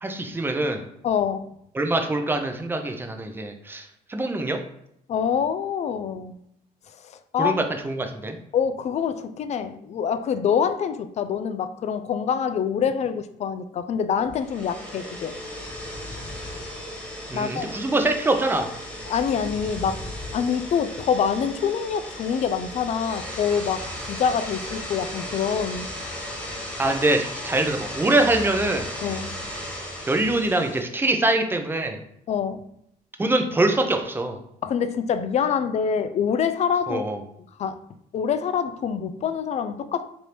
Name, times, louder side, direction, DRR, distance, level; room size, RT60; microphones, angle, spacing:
voice 1, 0.0-0.8 1.7-4.6 7.4-8.4 17.3-18.7 26.8-28.9 30.1-32.0 33.2-34.4 36.9-37.2, right 2 dB, 15° right, 5 dB, 0.5 m, -24 dB
voice 2, 1.0-1.5 5.1-6.4 7.3-7.5 8.5-15.3 17.3-17.7 19.1-25.9 29.0-29.3 32.3-32.6 34.6-37.0 37.6-37.8 38.1-40.0, left 7 dB, 40° left, 11 dB, 0.4 m, -25 dB
sound 1, 14.3-30.8, left 1 dB, 5° left, 0.9 m, -35 dB
3.3 x 2.6 x 4.4 m, 0.73 s
cardioid pair, 110°, 17 cm